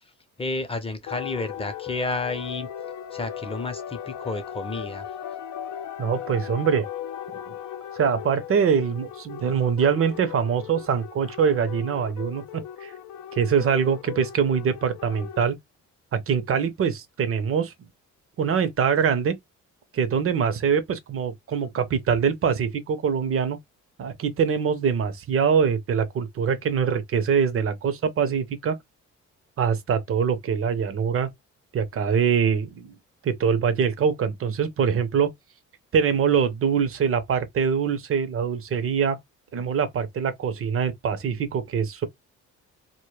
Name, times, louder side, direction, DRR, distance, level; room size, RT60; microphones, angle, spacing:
voice 1, 0.4-2.7 3.1-5.1, left 3 dB, 20° left, 0.6 m, -31 dB
sound 1, 1.1-15.5, left 9 dB, 70° left, 0.6 m, -37 dB
voice 2, 6.0-6.9 7.5-7.6 7.9-12.9 13.3-15.6 16.1-17.9 18.4-19.4 19.9-23.6 24.0-28.8 29.6-31.3 31.7-32.9 33.2-35.3 35.9-39.2 39.5-42.1, right 6 dB, 45° right, 0.7 m, -24 dB
2.2 x 2.1 x 3.1 m
cardioid pair, 90°, 30 cm